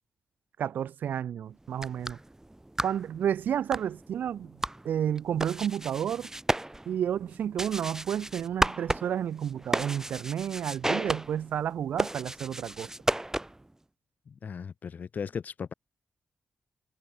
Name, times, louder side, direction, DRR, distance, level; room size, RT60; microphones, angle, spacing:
voice 1, 0.6-2.2 2.8-6.3 6.9-12.9, right 9 dB, 85° right, 0.8 m, -31 dB
sound 1, 1.6-13.7, right 1 dB, 15° right, 1.3 m, -34 dB
voice 2, 14.4-15.7, left 6 dB, 65° left, 0.9 m, -36 dB
cardioid pair, 50°, 3 cm